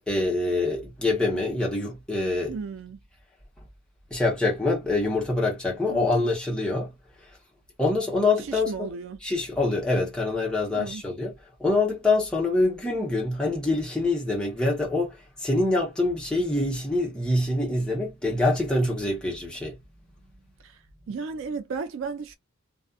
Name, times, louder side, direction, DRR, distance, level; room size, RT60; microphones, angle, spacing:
voice 1, 0.1-2.5 4.1-6.9 7.8-8.7 9.2-11.3 11.6-19.8, left 2 dB, 5° left, 0.9 m, -25 dB
voice 2, 2.5-3.0 5.9-6.2 8.4-9.2 10.7-11.0 20.6-20.8 21.1-22.4, right 5 dB, 60° right, 0.3 m, -34 dB
2.4 x 2.3 x 2.5 m
head